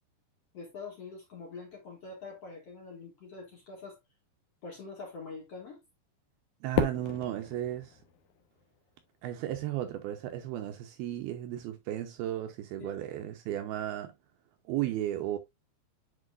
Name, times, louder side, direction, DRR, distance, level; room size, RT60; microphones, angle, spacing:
voice 1, 0.5-4.0 4.6-5.8 12.8-12.9, left 4 dB, 50° left, 2.1 m, -44 dB
voice 2, 6.6-8.0 9.2-14.1 14.7-15.4, right 13 dB, 80° right, 2.3 m, -34 dB
Fireworks, 6.7-9.1, left 7 dB, 70° left, 1.9 m, -34 dB
9.9 x 4.5 x 2.4 m
omnidirectional pair, 5.0 m